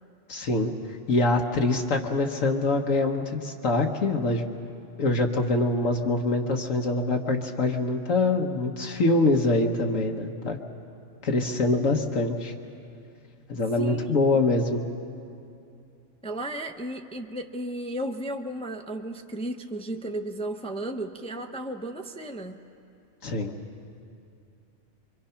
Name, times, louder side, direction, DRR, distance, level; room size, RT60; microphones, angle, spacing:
voice 1, 0.3-0.7 1.1-4.4 5.0-10.6 11.2-12.5 13.5-14.8 23.2-23.5, left 2 dB, 90° left, 1 dB, 1.6 m, -24 dB
voice 2, 13.8-14.2 16.2-22.6, right 1 dB, 5° left, 5 dB, 0.6 m, -34 dB
25.5 x 24.5 x 5.8 m, 2.6 s
omnidirectional pair, 1.3 m